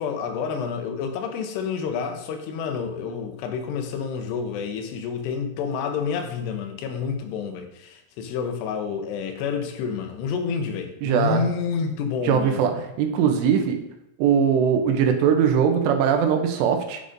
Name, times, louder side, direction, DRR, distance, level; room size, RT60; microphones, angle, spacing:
voice 1, 0.0-12.7, left 6 dB, 85° left, 5 dB, 2.9 m, -29 dB
voice 2, 11.0-11.5 12.2-13.8 14.2-17.0, right 7 dB, 90° right, 5 dB, 2.9 m, -21 dB
10.5 x 5.1 x 2.6 m, 0.85 s
omnidirectional pair, 4.7 m